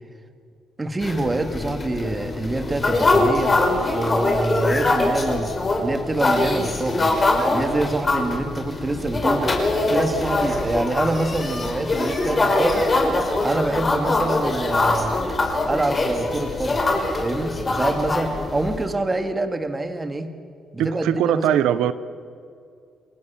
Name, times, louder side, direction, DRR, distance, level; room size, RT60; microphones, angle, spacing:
voice 1, 0.8-3.6 3.9-5.5 5.8-7.2 7.5-9.6 9.9-12.9 13.4-15.2 15.6-16.8 17.2-20.3 20.7-21.6, right 2 dB, 20° right, 8 dB, 2.5 m, -26 dB
sound 1, 1.0-18.8, left 2 dB, 30° left, 5.6 m, -23 dB
voice 2, 20.8-21.9, right 11 dB, 85° right, 15 dB, 1.1 m, -21 dB
29.0 x 21.0 x 7.5 m, 2.3 s
cardioid pair, 90°, 0 cm